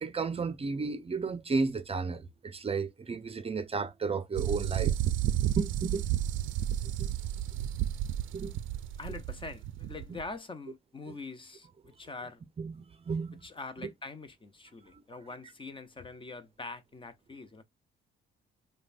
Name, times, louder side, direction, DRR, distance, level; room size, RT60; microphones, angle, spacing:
voice 1, 0.0-4.9 5.6-6.1 7.0-7.1 8.3-8.5 12.6-13.4, right 4 dB, 30° right, 0.5 m, -33 dB
sound 1, 4.4-10.2, right 12 dB, 80° right, 0.4 m, -32 dB
voice 2, 9.0-12.4 13.4-17.6, left 3 dB, 25° left, 0.6 m, -44 dB
5.0 x 2.2 x 2.4 m
cardioid pair, 90°, 20 cm